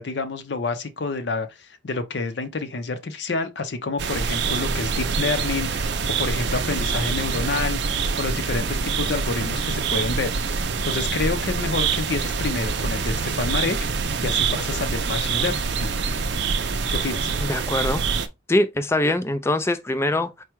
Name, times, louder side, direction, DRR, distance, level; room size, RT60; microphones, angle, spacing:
voice 1, 0.0-7.8 8.2-15.9 16.9-17.3, left 3 dB, 60° left, 0.6 m, -28 dB
sound 1, 4.0-18.3, right 5 dB, 60° right, 0.5 m, -25 dB
voice 2, 17.4-18.1 18.5-20.4, left 1 dB, 15° left, 0.3 m, -23 dB
4.6 x 2.2 x 4.4 m
head